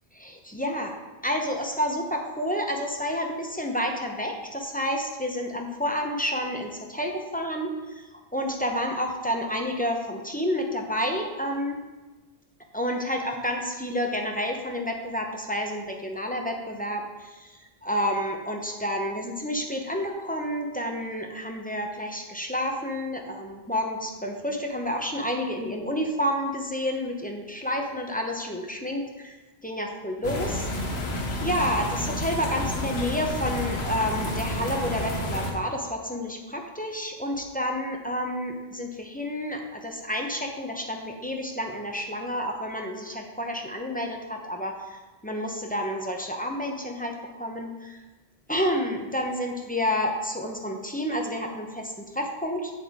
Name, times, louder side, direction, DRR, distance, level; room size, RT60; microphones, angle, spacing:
voice 1, 0.2-0.9 1.2-11.8 12.7-29.4 29.6-48.0 48.5-52.7, equal, 10° left, 1 dB, 0.7 m, -30 dB
sound 1, 30.2-35.5, left 1 dB, 85° left, 1.2 m, -30 dB
7.6 x 7.4 x 3.6 m, 1.2 s
omnidirectional pair, 1.0 m